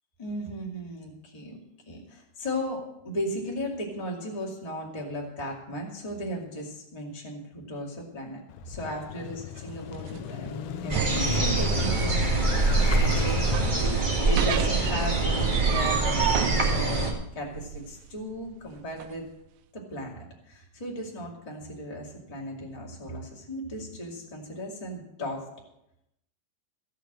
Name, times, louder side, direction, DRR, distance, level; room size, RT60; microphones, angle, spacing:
voice 1, 0.2-1.6 1.8-19.2 19.7-25.5, equal, 15° left, -1 dB, 1.6 m, -36 dB
Motorcycle / Engine starting, 8.5-14.4, left 13 dB, 85° left, 2.7 m, -36 dB
sound 1, 9.6-19.1, right 11 dB, 85° right, 2.0 m, -35 dB
sound 2, 10.9-17.1, right 3 dB, 35° right, 0.8 m, -24 dB
15.5 x 6.7 x 7.6 m, 0.84 s
omnidirectional pair, 4.6 m